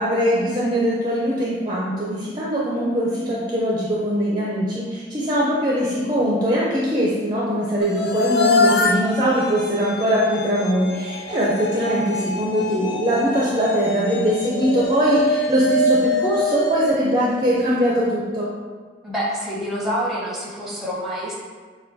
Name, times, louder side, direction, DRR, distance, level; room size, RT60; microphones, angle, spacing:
voice 1, 0.0-18.5, equal, 25° right, -6 dB, 0.5 m, -21 dB
sound 1, 7.8-18.0, left 1 dB, 60° left, 0.4 m, -24 dB
voice 2, 19.0-21.4, equal, ahead, -6 dB, 0.9 m, -27 dB
6.7 x 2.3 x 2.6 m, 1.5 s
head